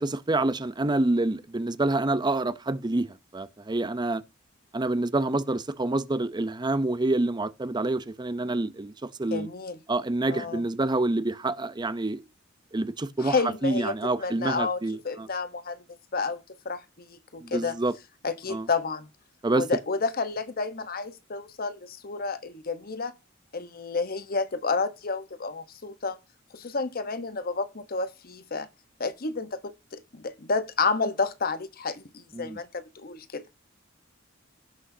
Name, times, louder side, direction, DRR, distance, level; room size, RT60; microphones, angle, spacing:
voice 1, 0.0-4.2 4.7-9.5 9.9-12.2 12.7-15.3 17.4-17.9 18.5-18.7 19.4-19.6 32.3-32.6, right 2 dB, 20° right, 0.6 m, -27 dB
voice 2, 9.3-9.8 10.3-10.6 13.2-14.8 15.0-15.8 16.1-17.8 18.2-19.1 19.5-23.2 23.5-26.2 26.5-28.7 29.0-33.4, left 4 dB, 45° left, 1.0 m, -30 dB
16.5 x 6.2 x 2.7 m
head